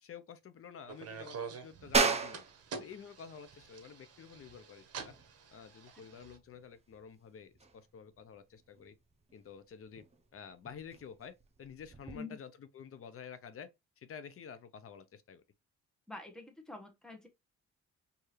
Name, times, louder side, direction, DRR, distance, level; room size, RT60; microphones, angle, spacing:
voice 1, 0.0-2.4 2.8-5.1 5.5-8.9 9.3-10.0 10.3-13.7 14.0-15.4, left 7 dB, 50° left, 0.7 m, -50 dB
sound 1, 0.9-6.4, right 5 dB, 55° right, 1.0 m, -47 dB
sound 2, 1.9-12.2, right 4 dB, 20° right, 0.8 m, -38 dB
voice 2, 12.1-12.4 16.1-17.3, left 3 dB, ahead, 1.2 m, -46 dB
4.6 x 2.8 x 3.2 m
cardioid pair, 90°, 30 cm